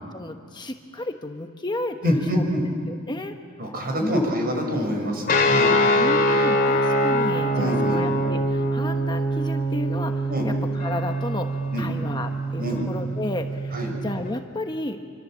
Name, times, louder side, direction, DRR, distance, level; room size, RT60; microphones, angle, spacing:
voice 1, 0.1-2.4 2.9-3.4 4.0-4.3 6.0-13.8 14.0-15.0, left 1 dB, 20° left, 5 dB, 1.1 m, -32 dB
voice 2, 2.0-2.6 3.6-5.8 7.5-8.0 10.3-10.5 11.7-11.9 12.6-12.8 13.7-13.9, equal, 45° right, 3 dB, 5.5 m, -25 dB
sound 1, 5.3-14.2, equal, 45° left, 2.6 m, -23 dB
26.5 x 25.0 x 7.5 m, 2.2 s
head